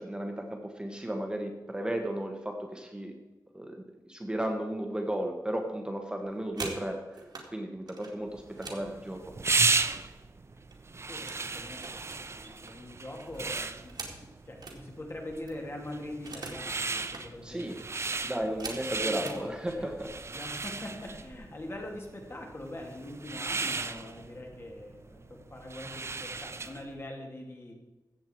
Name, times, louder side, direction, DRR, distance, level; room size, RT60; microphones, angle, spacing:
voice 1, 0.0-3.1 3.5-7.2 7.5-9.2 17.4-17.8 18.2-20.1, right 1 dB, 10° right, 3 dB, 1.3 m, -34 dB
sound 1, 6.2-7.5 7.9-10.2 10.5-11.5 11.8-14.8 15.2-15.3 15.5-16.7 17.0-17.3 17.8-19.4 20.3-20.4 20.8-21.1 21.4-21.9, right 3 dB, 75° right, 2.2 m, -44 dB
sound 2, 8.4-26.9, right 4 dB, 40° right, 0.6 m, -35 dB
voice 2, 11.1-17.8 18.1-18.2 18.6-19.9 20.3-27.7, left 1 dB, 35° left, 1 dB, 2.6 m, -43 dB
15.0 x 8.0 x 4.6 m, 1.1 s
wide cardioid pair, 105°, 7 cm